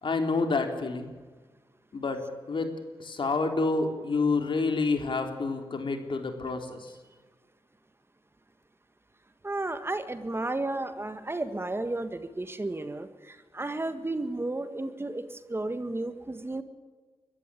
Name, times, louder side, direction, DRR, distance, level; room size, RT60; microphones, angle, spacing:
voice 1, 0.0-1.1 1.9-2.7 3.0-6.9, left 3 dB, 55° left, 5 dB, 3.6 m, -28 dB
voice 2, 9.4-16.6, right 2 dB, 25° right, 10 dB, 1.6 m, -33 dB
22.0 x 14.0 x 10.0 m, 1.4 s
cardioid pair, 65°, 10 cm